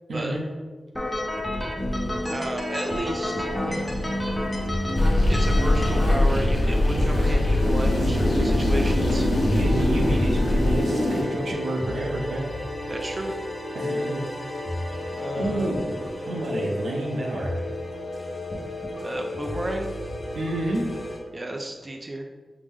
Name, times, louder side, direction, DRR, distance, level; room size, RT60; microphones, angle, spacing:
voice 1, 0.1-0.4 8.4-8.5 9.6-12.5 13.7-14.3 15.4-17.5 20.3-21.0, right 1 dB, 90° right, -1 dB, 0.6 m, -29 dB
sound 1, 0.9-6.1, left 1 dB, 5° left, 0.7 m, -30 dB
sound 2, 1.8-21.2, left 1 dB, 35° left, 0.9 m, -33 dB
voice 2, 2.3-4.0 5.2-9.3 12.9-13.3 15.2-15.7 19.0-19.9 21.3-22.3, right 1 dB, 35° right, 2 dB, 0.4 m, -32 dB
sound 3, 5.0-11.2, left 1 dB, 75° left, 1.0 m, -21 dB
4.8 x 2.1 x 3.5 m, 1.4 s
cardioid pair, 60°, 0 cm